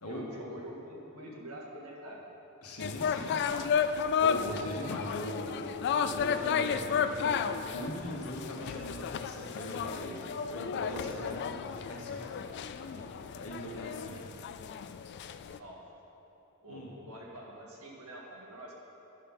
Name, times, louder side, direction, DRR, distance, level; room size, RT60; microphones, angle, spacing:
voice 1, 0.0-2.2 15.6-15.8 16.6-18.7, equal, 80° right, -2 dB, 1.6 m, -46 dB
voice 2, 2.6-3.4 3.8-5.7 6.0-14.2 16.7-16.9, equal, 90° left, -2 dB, 1.5 m, -40 dB
sound 1, 2.8-15.6, left 7 dB, 50° left, 0.3 m, -33 dB
10.0 x 5.5 x 5.7 m, 3.0 s
head